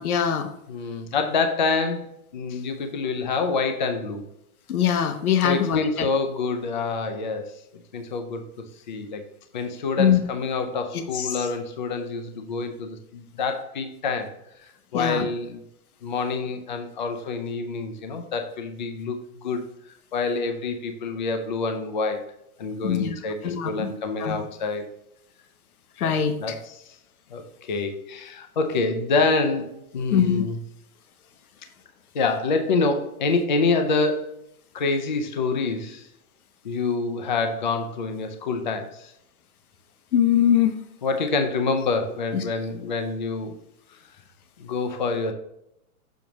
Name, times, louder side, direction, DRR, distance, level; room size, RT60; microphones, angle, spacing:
voice 1, 0.0-0.5 4.7-6.1 10.0-10.2 10.9-11.3 14.9-15.2 22.8-23.1 23.4-23.9 24.2-24.4 26.0-26.5 30.1-30.4 40.1-40.7, left 9 dB, 75° left, 7 dB, 1.0 m, -22 dB
voice 2, 0.7-4.2 5.4-7.6 7.9-8.4 8.9-9.3 9.5-14.4 14.9-15.6 16.0-19.6 20.1-22.3 22.6-24.9 26.0-26.9 27.3-29.7 29.9-30.6 32.1-34.3 34.7-36.1 36.6-39.1 41.0-43.6 44.6-45.3, left 4 dB, 35° left, 7 dB, 0.5 m, -27 dB
7.0 x 6.0 x 3.0 m, 0.81 s
hypercardioid pair, 175°, 44 cm